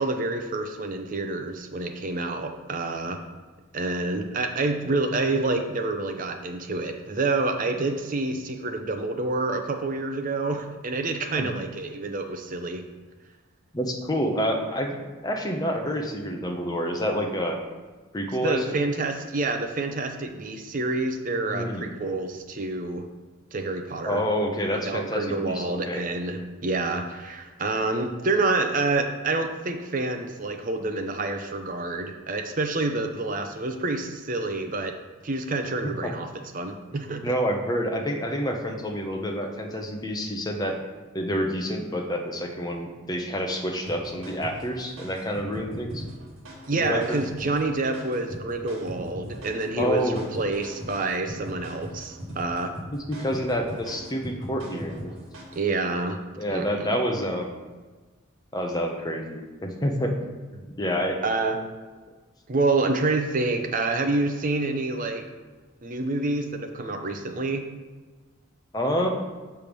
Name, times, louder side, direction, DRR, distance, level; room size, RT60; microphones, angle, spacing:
voice 1, 0.0-3.2 3.7-12.8 18.4-23.0 23.5-24.2 24.7-34.9 35.2-36.3 36.5-37.3 46.7-52.7 55.5-56.2 56.5-56.9 61.2-61.6 62.5-65.2 65.8-67.6, right 3 dB, 40° right, 5 dB, 0.6 m, -28 dB
voice 2, 13.7-17.6 18.1-18.8 21.5-21.9 24.0-26.1 36.9-40.8 41.1-46.0 46.7-47.2 49.8-50.3 52.9-55.1 56.4-57.5 58.5-60.1 60.5-61.2 68.7-69.1, equal, 20° left, 2 dB, 0.7 m, -28 dB
sound 1, 43.9-55.7, equal, 80° right, 1.6 m, -39 dB
6.8 x 3.5 x 6.0 m, 1.3 s
head